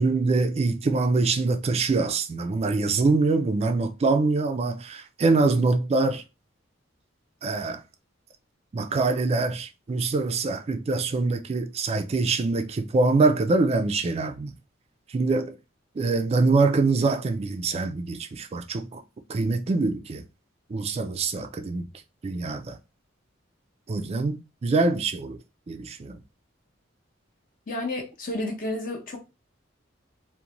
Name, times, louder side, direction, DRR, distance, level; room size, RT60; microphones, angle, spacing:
voice 1, 0.0-6.2 7.4-7.8 8.7-14.5 15.1-15.6 16.0-19.0 19.3-20.2 20.7-21.9 22.2-22.8 23.9-25.4 25.7-26.2, right 3 dB, 30° right, 0.3 m, -24 dB
voice 2, 27.7-29.2, left 2 dB, 45° left, 0.7 m, -31 dB
2.5 x 2.1 x 2.9 m
head